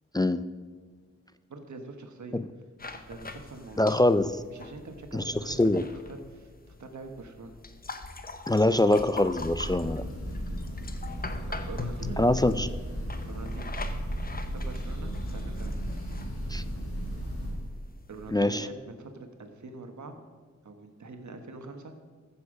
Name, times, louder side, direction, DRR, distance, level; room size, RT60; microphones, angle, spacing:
voice 1, 1.5-2.4 2.9-4.0 4.5-7.6 11.7-12.5 13.3-13.7 14.5-15.8 18.1-20.1 20.6-21.9, right 3 dB, 80° right, 6 dB, 1.3 m, -44 dB
sound 1, 2.8-18.5, left 3 dB, 30° left, 0.9 m, -43 dB
voice 2, 3.8-4.4 5.1-5.9 8.5-10.0 12.2-12.7 16.5-16.6 18.3-18.7, left 1 dB, 15° left, 12 dB, 0.3 m, -24 dB
Breathing / Bird, 9.2-17.7, equal, 50° left, 2.9 m, -35 dB
14.5 x 7.1 x 5.0 m, 1.5 s
wide cardioid pair, 65°, 29 cm